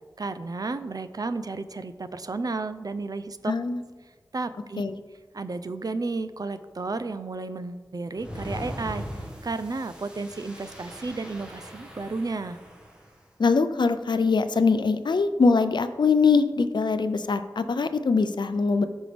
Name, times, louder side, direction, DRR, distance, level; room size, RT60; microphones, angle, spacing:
voice 1, 0.2-3.5 4.3-4.8 5.3-9.1 9.4-12.6, right 3 dB, 55° right, 11 dB, 0.5 m, -32 dB
voice 2, 3.5-3.8 4.8-4.9 13.4-18.8, left 4 dB, 80° left, 11 dB, 0.5 m, -22 dB
sound 1, 8.2-13.1, equal, 10° right, 1.7 m, -40 dB
13.5 x 5.3 x 3.4 m, 1.4 s
wide cardioid pair, 80°, 8 cm